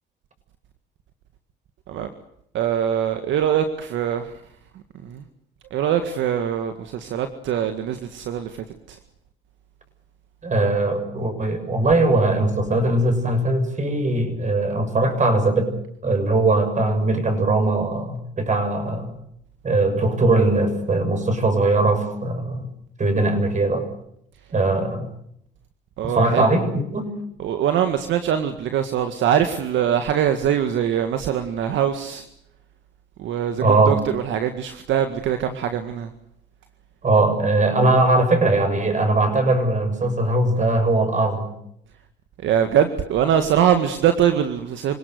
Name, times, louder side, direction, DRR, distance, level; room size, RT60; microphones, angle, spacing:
voice 1, 2.5-4.3 5.0-5.3 5.7-9.0 26.0-26.5 27.4-32.3 33.2-36.1 42.4-45.0, right 9 dB, 70° right, 7 dB, 1.9 m, -22 dB
voice 2, 10.4-15.7 16.0-19.1 19.6-22.7 23.0-23.8 24.5-25.1 26.0-27.1 33.6-33.9 37.0-41.5, right 2 dB, 35° right, 8 dB, 6.9 m, -20 dB
27.0 x 18.5 x 8.0 m, 0.74 s
supercardioid pair, 75°, 21 cm